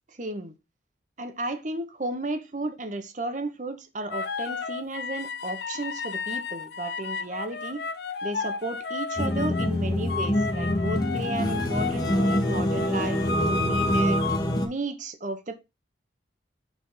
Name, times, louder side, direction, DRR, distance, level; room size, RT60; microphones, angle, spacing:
voice 1, 0.2-0.5 1.2-7.8 8.2-14.2 14.6-15.6, right 2 dB, 40° right, 0.9 m, -33 dB
sound 1, 4.1-9.7 10.1-14.4, left 3 dB, 60° left, 0.6 m, -32 dB
sound 2, 9.2-14.7, left 1 dB, 20° left, 1.0 m, -26 dB
6.1 x 3.5 x 5.5 m
head